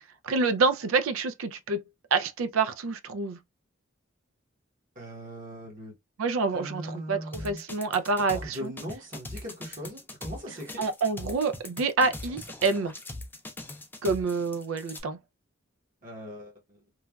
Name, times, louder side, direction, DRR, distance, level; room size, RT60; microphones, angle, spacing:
voice 1, 0.2-1.8 2.1-3.4 6.2-8.7 10.8-12.9 14.0-15.2, right 4 dB, 75° right, 0.4 m, -27 dB
voice 2, 4.9-5.9 6.5-7.6 8.3-10.8 16.0-16.8, equal, 40° right, 1.0 m, -40 dB
sound 1, 7.3-15.0, left 2 dB, 10° left, 0.4 m, -40 dB
3.1 x 2.2 x 2.2 m
head